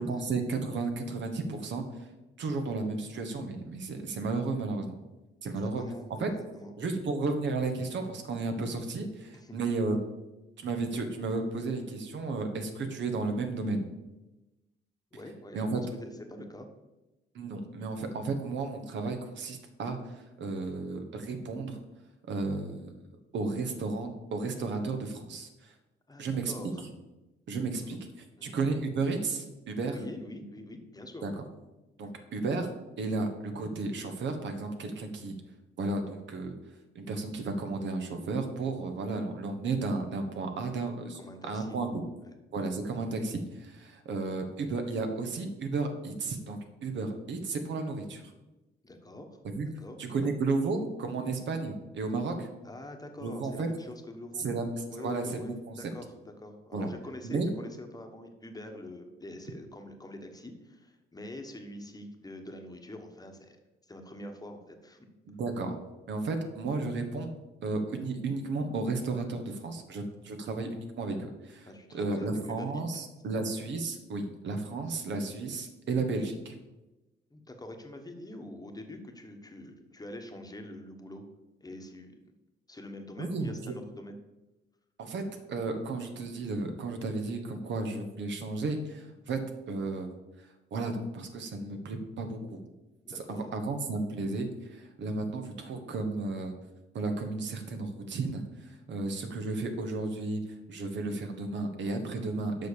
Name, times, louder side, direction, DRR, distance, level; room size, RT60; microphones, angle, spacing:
voice 1, 0.0-1.9 2.4-5.0 5.4-5.8 6.1-6.3 6.8-10.0 10.6-13.9 15.5-15.8 17.3-21.8 22.3-22.9 23.3-25.7 26.2-26.5 27.5-28.0 28.4-30.0 31.2-31.4 32.0-35.4 35.8-36.5 36.9-42.0 42.5-48.3 49.4-49.7 50.0-52.5 53.2-53.7 54.4-55.8 56.7-56.9 57.2-57.5 65.2-65.8 66.1-67.3 67.6-76.5 83.2-83.7 85.0-90.1 90.7-92.6 93.1-96.5 96.9-100.4 100.7-102.7, right 3 dB, 65° right, 6 dB, 1.4 m, -33 dB
voice 2, 5.4-6.7 9.3-9.6 15.1-16.7 26.1-26.8 27.8-28.0 28.4-28.5 29.9-31.3 41.1-41.8 48.8-49.4 49.8-50.1 52.6-54.5 54.9-63.6 63.8-65.0 71.7-72.8 77.3-81.2 81.6-82.2 82.7-84.2 93.0-93.5, left 1 dB, 20° left, 5 dB, 1.3 m, -45 dB
7.6 x 5.6 x 6.8 m, 1.0 s
cardioid pair, 90°, 20 cm